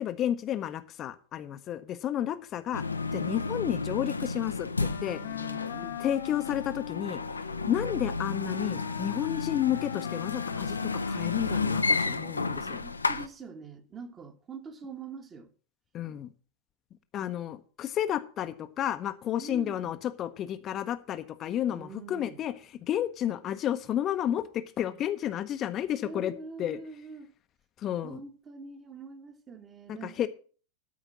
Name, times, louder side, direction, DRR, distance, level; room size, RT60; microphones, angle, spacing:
voice 1, 0.0-2.8 3.1-5.2 6.0-7.2 7.7-12.8 15.9-16.3 17.1-22.5 22.9-26.3 26.6-26.8 27.8-28.2 30.0-30.3, left 11 dB, 30° left, 0.8 m, -31 dB
sound 1, 2.7-13.3, left 3 dB, 80° left, 0.7 m, -32 dB
Wind instrument woodwind instrument, 4.8-12.0, left 12 dB, 55° left, 0.9 m, -40 dB
voice 2, 5.2-6.0 7.7-8.0 12.0-12.2 12.5-15.5 19.4-19.9 21.7-22.4 26.0-27.3 28.0-30.2, right 4 dB, 25° right, 1.5 m, -44 dB
12.5 x 5.1 x 7.3 m
figure-of-eight pair, 90°, 0 cm